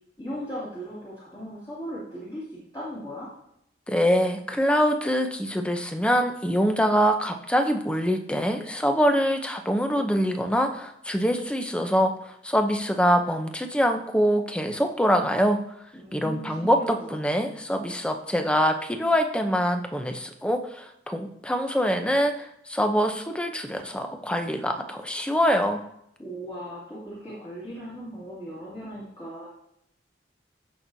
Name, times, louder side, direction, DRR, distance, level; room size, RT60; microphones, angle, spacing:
voice 1, 0.2-3.3 15.9-17.1 26.2-29.5, equal, 20° left, -9 dB, 2.4 m, -38 dB
voice 2, 3.9-15.6 16.1-25.8, equal, 5° left, 5 dB, 0.7 m, -24 dB
15.0 x 6.1 x 2.7 m, 0.76 s
head